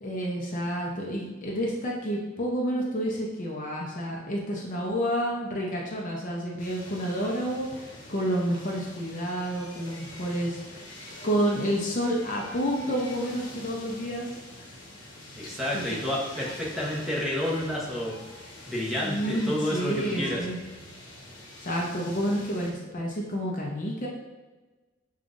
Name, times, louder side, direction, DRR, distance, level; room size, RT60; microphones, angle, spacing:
voice 1, 0.0-10.8 11.2-14.3 15.7-16.0 19.0-20.6 21.6-24.1, equal, 40° left, -2 dB, 0.6 m, -29 dB
sound 1, 6.6-22.7, left 1 dB, 85° left, 1.1 m, -45 dB
voice 2, 15.3-18.1 18.7-20.5, left 1 dB, ahead, -6 dB, 0.9 m, -30 dB
6.9 x 2.4 x 2.5 m, 1.2 s
head